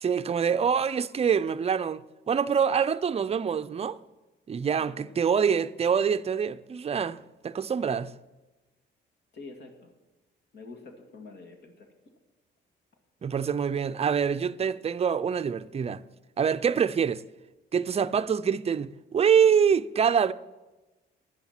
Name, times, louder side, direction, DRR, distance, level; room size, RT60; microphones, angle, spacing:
voice 1, 0.0-4.0 4.5-8.1 13.2-16.0 16.4-17.2 17.7-20.3, right 7 dB, 30° right, 0.5 m, -25 dB
voice 2, 4.8-5.2 9.3-9.9 10.5-11.9, left 3 dB, 60° left, 2.2 m, -46 dB
10.0 x 9.6 x 6.0 m
cardioid pair, 90°, 20 cm